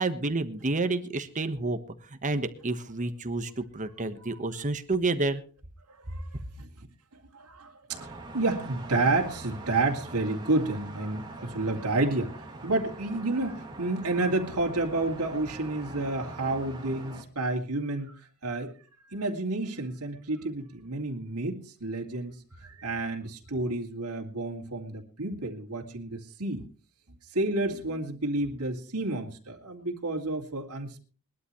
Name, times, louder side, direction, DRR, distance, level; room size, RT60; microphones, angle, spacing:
voice 1, 0.0-1.8 2.2-5.4, right 2 dB, 35° right, 9 dB, 1.3 m, -29 dB
voice 2, 5.9-6.9 7.3-12.4 12.6-18.7 19.1-26.7 27.3-31.0, right 2 dB, 85° right, 1 dB, 2.4 m, -30 dB
sound 1, 7.9-17.2, right 2 dB, 20° right, 2.6 m, -43 dB
21.5 x 12.0 x 3.1 m, 0.39 s
head